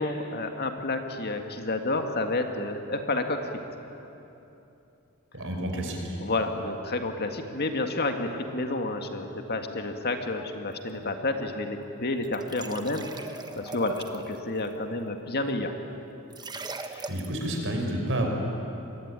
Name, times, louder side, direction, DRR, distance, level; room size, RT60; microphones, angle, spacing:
voice 1, 0.0-3.6 6.2-15.7 16.8-17.1, left 2 dB, 45° left, 5 dB, 2.0 m, -30 dB
voice 2, 5.3-6.2 17.1-18.3, right 1 dB, 60° right, 2 dB, 5.4 m, -30 dB
sound 1, 12.2-14.4 16.3-17.4, right 3 dB, 20° right, 1.3 m, -39 dB
27.5 x 21.5 x 9.8 m, 2.9 s
head